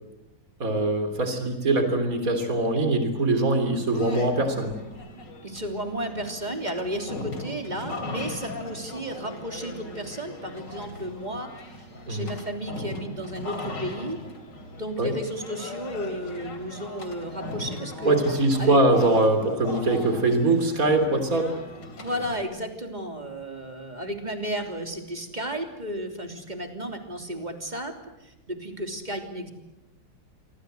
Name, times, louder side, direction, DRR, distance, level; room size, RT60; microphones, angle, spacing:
voice 1, 0.6-4.7 12.1-12.3 15.0-15.1 18.1-21.5, right 2 dB, 50° right, 7 dB, 3.8 m, -22 dB
sound 1, 3.9-22.4, left 2 dB, 90° left, 3.8 m, -39 dB
voice 2, 5.4-11.5 12.1-14.2 14.7-18.1 18.6-18.8 22.0-28.0 28.2-29.5, right 1 dB, 25° right, 5 dB, 3.4 m, -33 dB
28.5 x 24.5 x 8.0 m, 0.98 s
omnidirectional pair, 1.9 m